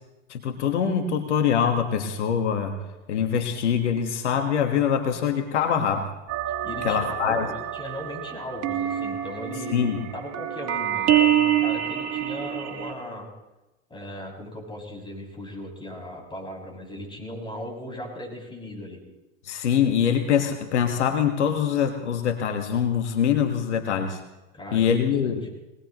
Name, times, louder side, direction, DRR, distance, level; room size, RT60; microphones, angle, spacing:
voice 1, 0.3-2.8 3.1-6.1 6.8-7.5 9.7-10.0 19.4-24.2 24.7-25.5, left 8 dB, 85° left, 5 dB, 1.6 m, -24 dB
sound 1, 6.3-12.9, right 10 dB, 50° right, 2.3 m, -26 dB
voice 2, 6.6-13.3 13.9-19.0 24.5-25.5, left 1 dB, 15° left, -1 dB, 6.7 m, -37 dB
23.0 x 19.5 x 3.1 m, 1.0 s
hypercardioid pair, 90°, 34 cm